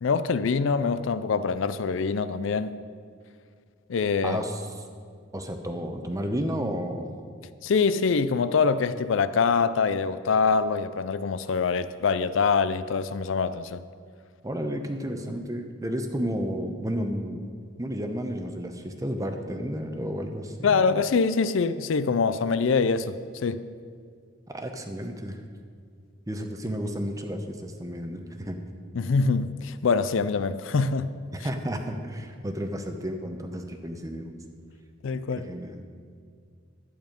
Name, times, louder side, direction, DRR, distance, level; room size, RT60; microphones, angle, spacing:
voice 1, 0.0-2.8 3.9-4.4 7.6-13.8 20.6-23.7 28.9-31.1 35.0-35.5, left 5 dB, 65° left, 0.4 m, -24 dB
voice 2, 4.2-4.6 5.3-7.1 14.4-17.5 17.8-20.8 24.5-25.4 26.3-28.6 31.3-34.4 35.4-35.8, equal, 15° right, 0.8 m, -32 dB
11.5 x 9.1 x 5.2 m
head